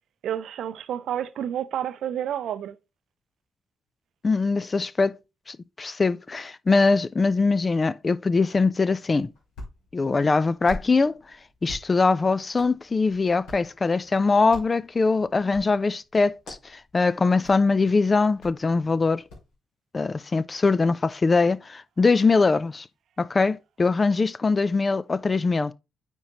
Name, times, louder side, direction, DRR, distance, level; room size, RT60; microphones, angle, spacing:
voice 1, 0.2-2.8, right 10 dB, 60° right, 0.5 m, -30 dB
voice 2, 4.2-5.2 5.5-9.3 9.9-11.2 11.6-19.2 19.9-22.9 23.2-25.7, left 4 dB, 35° left, 0.4 m, -22 dB
Hands, 9.2-19.5, left 1 dB, 65° left, 2.5 m, -46 dB
9.2 x 3.7 x 3.0 m
figure-of-eight pair, 40°, 0 cm